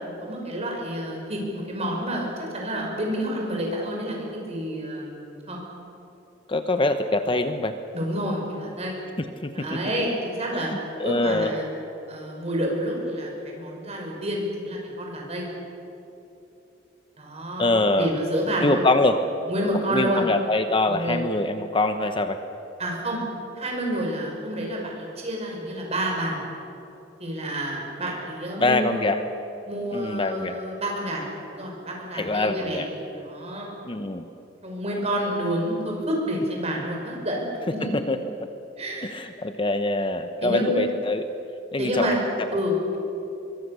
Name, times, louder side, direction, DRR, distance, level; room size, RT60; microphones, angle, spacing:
voice 1, 0.0-5.6 7.9-9.0 9.5-10.7 11.0-11.6 12.1-15.5 17.2-18.9 19.5-20.3 20.9-21.2 22.8-23.2 23.6-26.4 27.2-29.1 29.7-32.9 33.1-33.7 34.6-37.4 37.7-38.0 38.8-39.1 40.4-40.8 41.8-42.2 42.5-43.0, equal, 35° right, 0 dB, 5.8 m, -29 dB
voice 2, 6.5-7.7 9.2-9.8 10.5-11.5 17.6-18.1 18.6-19.2 19.9-22.4 28.6-29.2 29.9-30.6 32.1-32.9 33.8-34.3 37.8-38.5 39.0-41.3 41.7-42.6, left 2 dB, 25° left, 8 dB, 0.9 m, -24 dB
24.0 x 23.5 x 6.8 m, 2.8 s
head